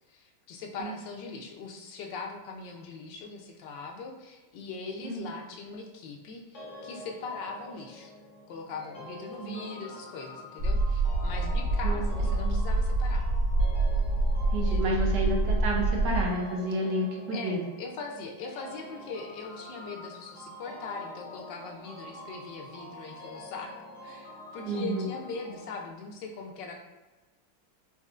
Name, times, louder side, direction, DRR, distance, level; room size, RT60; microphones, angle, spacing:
voice 1, 0.1-8.1 8.5-13.3 14.7-15.0 17.3-23.7 24.0-26.7, left 4 dB, 80° left, 2 dB, 1.2 m, -41 dB
sound 1, 6.5-25.8, left 1 dB, 60° left, 0.8 m, -46 dB
voice 2, 9.4-9.8 11.8-12.0 12.4-12.6 14.5-17.6 24.7-25.1, right 1 dB, 70° right, -1 dB, 1.2 m, -30 dB
sound 2, 10.6-16.3, right 2 dB, 45° right, 1.1 m, -26 dB
4.3 x 2.6 x 2.4 m, 1.1 s
omnidirectional pair, 2.0 m